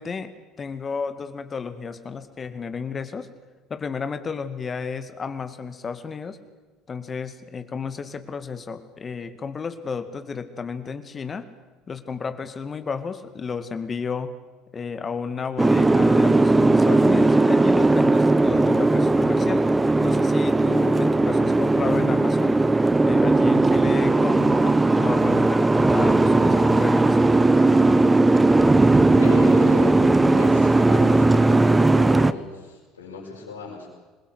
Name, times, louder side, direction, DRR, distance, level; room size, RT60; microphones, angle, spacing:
voice 1, 0.0-3.3 3.7-6.4 6.9-11.5 11.9-14.3 14.7-22.6 23.0-27.3, left 5 dB, 30° left, 10 dB, 2.1 m, -32 dB
Boat Water vehicle, 15.6-32.3, right 2 dB, 15° right, 1.2 m, -18 dB
voice 2, 29.2-33.9, left 4 dB, 80° left, -5 dB, 6.1 m, -35 dB
27.0 x 21.5 x 8.2 m, 1.2 s
figure-of-eight pair, 65°, 0 cm